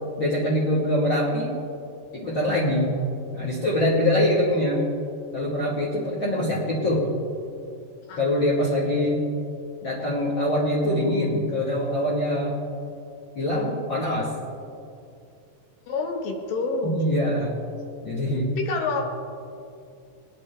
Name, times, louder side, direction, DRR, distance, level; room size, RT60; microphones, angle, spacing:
voice 1, 0.2-1.5 2.1-2.9 3.3-4.9 5.3-7.1 8.1-9.2 9.8-12.6 13.3-14.3 16.9-17.5 18.0-18.5, left 1 dB, 55° left, -6 dB, 1.4 m, -24 dB
voice 2, 15.9-17.0 18.6-19.1, left 4 dB, 75° left, 2 dB, 2.9 m, -27 dB
20.5 x 8.4 x 3.3 m, 2.5 s
omnidirectional pair, 4.1 m